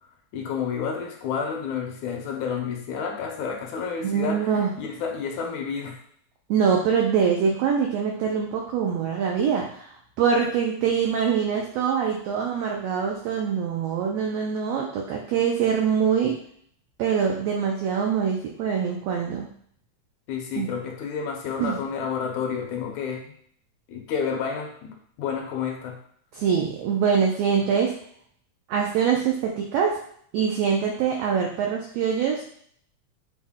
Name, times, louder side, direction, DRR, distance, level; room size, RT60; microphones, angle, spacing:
voice 1, 0.3-6.0 20.3-23.3 23.9-26.0, left 6 dB, 75° left, 2 dB, 2.0 m, -30 dB
voice 2, 4.0-4.7 6.5-9.9 10.2-16.4 17.0-19.5 20.6-20.7 21.6-21.8 26.3-27.9 28.7-30.0 30.3-32.5, right 7 dB, 85° right, 0 dB, 1.4 m, -24 dB
6.0 x 2.1 x 3.5 m, 0.62 s
omnidirectional pair, 3.5 m